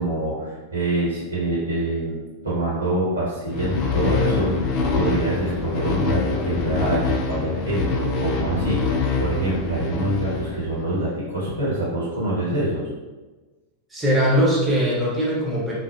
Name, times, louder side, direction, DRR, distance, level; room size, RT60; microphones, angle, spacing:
voice 1, 0.0-2.2 2.4-4.6 4.9-12.9, right 1 dB, 80° right, -8 dB, 1.0 m, -25 dB
sound 1, 3.5-10.9, left 4 dB, 40° left, 0.4 m, -25 dB
voice 2, 13.9-15.7, equal, 10° right, -7 dB, 0.7 m, -20 dB
2.4 x 2.1 x 2.4 m, 1.2 s
figure-of-eight pair, 90°, 0 cm